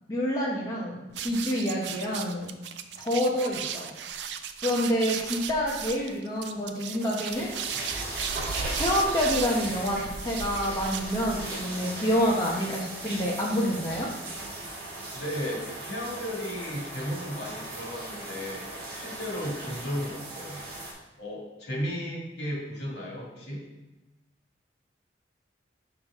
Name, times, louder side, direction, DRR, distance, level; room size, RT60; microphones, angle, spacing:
voice 1, 0.1-2.5 3.0-3.9 4.6-7.9 8.8-14.1, equal, 20° left, -4 dB, 0.9 m, -28 dB
sound 1, 1.1-11.6, right 7 dB, 75° right, 0.4 m, -36 dB
sound 2, 7.3-20.9, right 1 dB, 55° right, 1.7 m, -38 dB
voice 2, 15.1-18.7 18.9-20.6 21.2-23.6, equal, 75° left, -3 dB, 2.1 m, -34 dB
6.0 x 5.5 x 3.5 m, 1.0 s
head